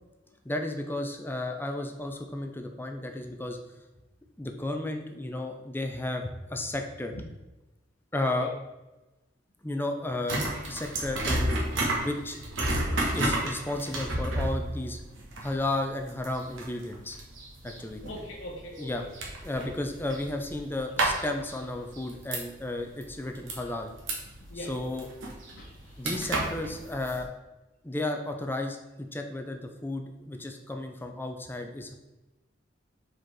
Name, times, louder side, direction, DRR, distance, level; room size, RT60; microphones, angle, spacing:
voice 1, 0.4-3.6 4.4-7.1 8.1-8.5 9.6-11.6 12.0-12.4 13.1-15.0 15.4-17.2 17.6-18.0 18.8-19.0 19.4-23.9 24.5-25.1 26.0-27.3 27.8-32.0, left 2 dB, 10° left, 4 dB, 0.5 m, -33 dB
sound 1, 10.3-22.7 23.0-27.2, right 1 dB, 85° right, 1.4 m, -31 dB
voice 2, 18.0-19.1 19.5-19.7 24.5-25.0 25.5-26.0, left 1 dB, 85° left, -2 dB, 1.1 m, -42 dB
4.9 x 4.4 x 4.6 m, 1.1 s
head